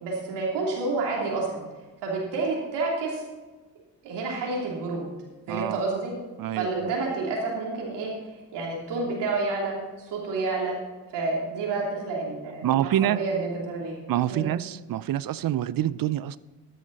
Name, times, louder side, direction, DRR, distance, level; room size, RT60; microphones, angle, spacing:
voice 1, 0.0-1.6 2.0-3.2 4.0-5.1 5.5-6.1 6.5-8.1 8.5-9.7 10.0-10.8 11.1-14.0 14.3-14.5, right 3 dB, 80° right, -3 dB, 3.1 m, -29 dB
voice 2, 5.5-5.8 6.4-6.9 12.6-13.2 14.1-16.4, right 12 dB, 55° right, 18 dB, 0.6 m, -26 dB
13.0 x 10.0 x 4.1 m, 1.2 s
supercardioid pair, 55°, 41 cm